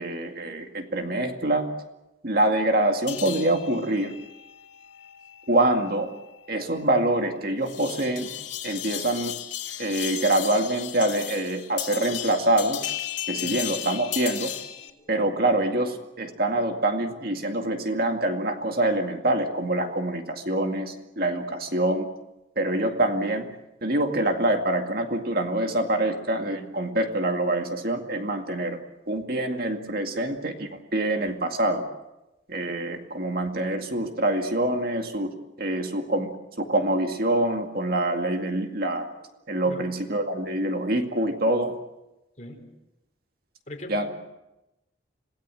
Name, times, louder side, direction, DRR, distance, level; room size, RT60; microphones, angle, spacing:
voice 1, 0.0-1.7 2.2-4.1 5.5-6.1 6.5-8.3 8.6-9.3 9.8-12.8 13.3-14.5 15.1-22.1 22.6-23.5 23.8-28.8 29.1-31.9 32.5-36.3 36.6-39.1 39.5-41.7 43.9-44.1, right 1 dB, 50° right, 5 dB, 2.2 m, -25 dB
sound 1, 3.1-14.9, left 12 dB, 80° left, 2.5 m, -36 dB
voice 2, 14.8-15.2 19.8-20.0 39.6-39.8 42.4-42.7 43.7-44.1, left 1 dB, 40° left, 3 dB, 4.2 m, -44 dB
27.0 x 17.5 x 7.7 m, 0.96 s
head